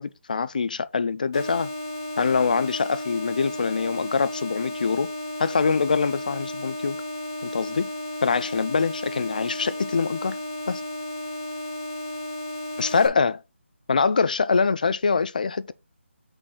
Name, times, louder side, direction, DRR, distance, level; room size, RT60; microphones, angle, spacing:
voice 1, 0.0-1.7 2.2-5.1 5.4-7.0 7.4-7.9 8.2-10.4 10.7-10.8 12.8-13.4 13.9-15.7, left 5 dB, 40° left, 0.5 m, -24 dB
sound 1, 1.3-13.1, left 1 dB, 20° left, 1.0 m, -34 dB
6.2 x 3.9 x 4.5 m
figure-of-eight pair, 170°, 7 cm